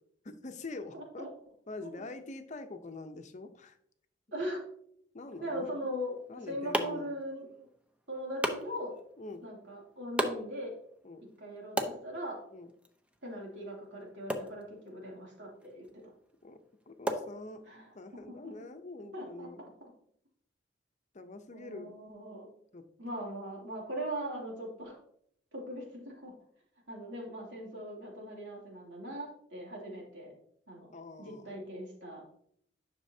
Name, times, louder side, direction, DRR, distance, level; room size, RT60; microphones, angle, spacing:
voice 1, 0.2-1.3 1.7-3.8 5.1-5.7 6.3-7.1 9.2-9.4 11.0-11.2 12.5-12.7 16.4-16.6 16.9-17.6 17.9-19.6 21.1-22.0 22.7-22.9 30.9-31.6, left 2 dB, 40° left, 8 dB, 0.7 m, -45 dB
voice 2, 0.9-1.3 1.8-2.1 4.3-4.6 5.4-6.2 6.5-7.5 8.1-8.9 9.4-10.7 11.2-12.4 13.2-16.0 17.7-17.9 18.3-18.7 19.1-19.5 21.5-22.5 23.0-25.0 25.5-26.3 26.9-30.3 30.7-30.9 31.2-32.2, equal, 75° right, -2 dB, 2.8 m, -40 dB
sound 1, 6.1-18.0, right 1 dB, 5° right, 0.7 m, -40 dB
11.0 x 6.1 x 2.8 m, 0.69 s
head